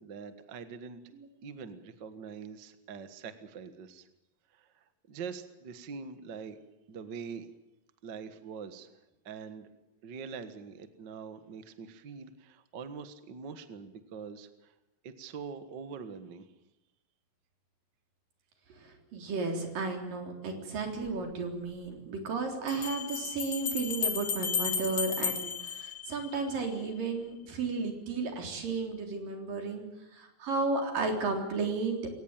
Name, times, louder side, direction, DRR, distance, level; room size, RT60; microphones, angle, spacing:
voice 1, 0.0-1.0 1.4-4.1 4.5-6.6 6.9-7.5 8.0-8.9 9.2-9.7 10.0-14.7 15.0-16.5, right 6 dB, 45° right, 10 dB, 1.5 m, -44 dB
voice 2, 18.8-29.9 30.1-32.1, right 3 dB, 70° right, 3 dB, 5.4 m, -33 dB
Bell, 21.0-21.1 22.7-26.6, left 6 dB, 45° left, 2.8 m, -34 dB
22.5 x 19.0 x 9.0 m, 0.95 s
omnidirectional pair, 4.0 m